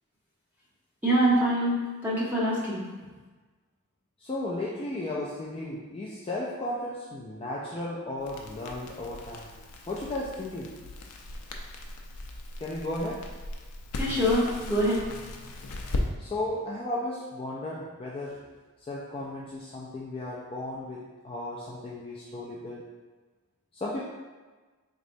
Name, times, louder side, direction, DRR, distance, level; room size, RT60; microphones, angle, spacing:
voice 1, 1.0-2.8 14.0-15.0, equal, 10° right, -8 dB, 1.0 m, -24 dB
voice 2, 4.2-9.5 9.9-10.7 12.6-13.2 16.2-18.4 18.8-22.8 23.7-24.0, left 1 dB, 25° left, -4 dB, 0.3 m, -35 dB
Crackle, 8.2-16.1, left 2 dB, 85° left, 0.5 m, -38 dB
3.9 x 3.1 x 2.6 m, 1.3 s
head